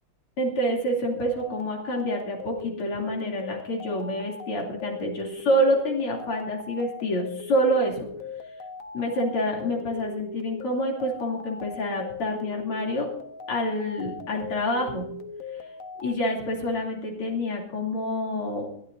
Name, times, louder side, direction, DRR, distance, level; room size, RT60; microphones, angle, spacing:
voice 1, 0.4-8.1 8.9-13.1 13.5-15.0 15.5-15.7 16.0-18.7, equal, 90° left, -1 dB, 3.6 m, -27 dB
sound 1, 1.0-16.2, left 4 dB, 50° left, 1.0 m, -39 dB
22.5 x 12.0 x 2.6 m, 0.70 s
omnidirectional pair, 2.4 m